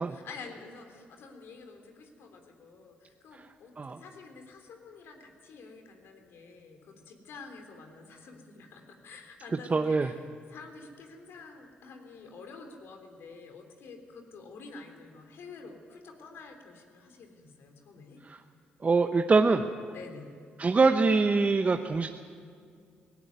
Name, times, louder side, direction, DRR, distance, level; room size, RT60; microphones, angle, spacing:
voice 1, 0.1-10.2 10.5-18.2 19.9-20.4, left 4 dB, 70° left, 4 dB, 3.5 m, -48 dB
voice 2, 9.7-10.1 18.3-18.4 18.8-19.6 20.6-22.1, right 4 dB, 35° right, 6 dB, 1.0 m, -23 dB
18.0 x 17.5 x 9.6 m, 2.2 s
supercardioid pair, 55°, 4 cm